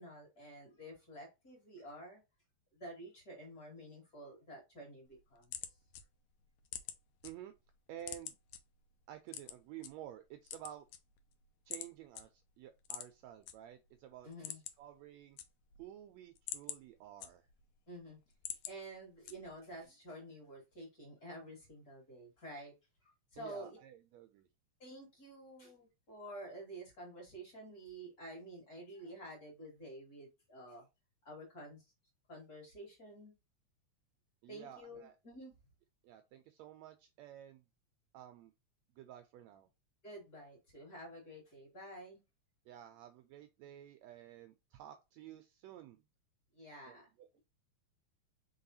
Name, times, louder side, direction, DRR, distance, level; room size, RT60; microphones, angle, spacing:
voice 1, 0.0-2.2 2.7-5.6 14.2-14.6 17.9-18.2 18.7-22.7 23.0-23.8 24.8-30.8 31.2-31.9 32.3-33.3 34.5-35.5 40.0-42.2 46.5-47.1, right 1 dB, 35° left, 2.3 m, -50 dB
sound 1, 5.1-7.3 7.7-8.6 9.3-9.9 10.4-11.3 11.7-11.9 12.2-12.3 12.8-13.5 13.9-14.0 14.3-14.9 15.2-15.9 16.3-17.7 18.1-18.8 19.3-19.7, left 11 dB, 75° left, 1.9 m, -45 dB
voice 2, 7.9-8.4 9.1-10.9 11.7-15.4 15.8-17.5 23.4-24.5 34.4-35.1 36.0-37.6 38.1-38.5 39.0-39.7 42.7-46.0 46.9-47.4, right 11 dB, 80° right, 1.6 m, -52 dB
4.7 x 4.1 x 2.7 m
omnidirectional pair, 3.5 m